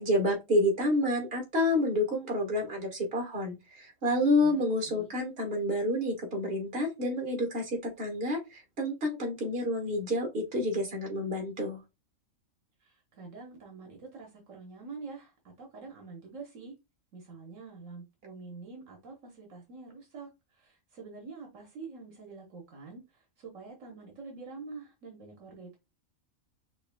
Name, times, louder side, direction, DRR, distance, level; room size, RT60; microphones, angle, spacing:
voice 1, 0.0-11.8, left 1 dB, 50° right, 1.6 m, -29 dB
voice 2, 12.8-16.7 17.1-25.8, right 4 dB, 75° right, 1.4 m, -46 dB
6.0 x 2.5 x 2.2 m
omnidirectional pair, 1.4 m